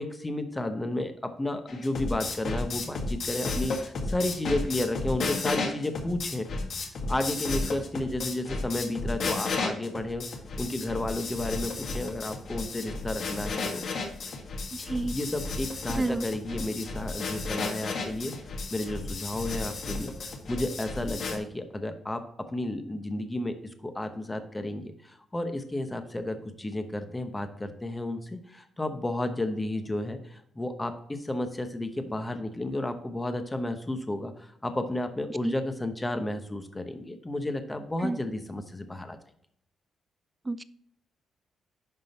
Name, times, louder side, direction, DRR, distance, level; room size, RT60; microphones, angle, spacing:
voice 1, 0.0-6.5 7.1-10.3 10.6-13.8 15.1-18.3 18.7-20.1 20.5-39.2, left 1 dB, 15° left, 8 dB, 0.9 m, -32 dB
sound 1, 1.7-21.4, left 3 dB, 55° left, 1.6 m, -33 dB
voice 2, 14.7-15.2 15.9-16.3 35.4-35.5 38.0-38.2 40.5-40.6, right 2 dB, 15° right, 15 dB, 0.4 m, -30 dB
10.5 x 3.8 x 4.2 m, 0.73 s
cardioid pair, 135°, 0 cm